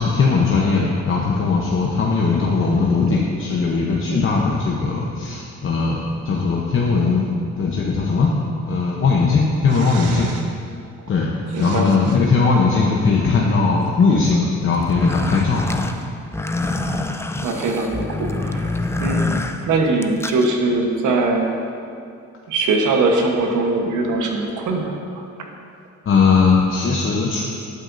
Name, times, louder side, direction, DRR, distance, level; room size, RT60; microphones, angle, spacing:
voice 1, 0.0-7.3 7.6-8.3 8.7-10.3 11.1-11.3 11.6-15.9 26.1-27.4, left 4 dB, 45° left, -2 dB, 0.9 m, -19 dB
voice 2, 9.7-10.4 11.5-11.9 17.4-18.7 19.0-19.3 19.6-21.5 22.5-25.3, right 3 dB, 80° right, 2 dB, 1.2 m, -21 dB
sound 1, 14.8-20.5, left 2 dB, 10° left, 0.4 m, -26 dB
11.5 x 8.2 x 2.7 m, 2.4 s
cardioid pair, 90°, 30 cm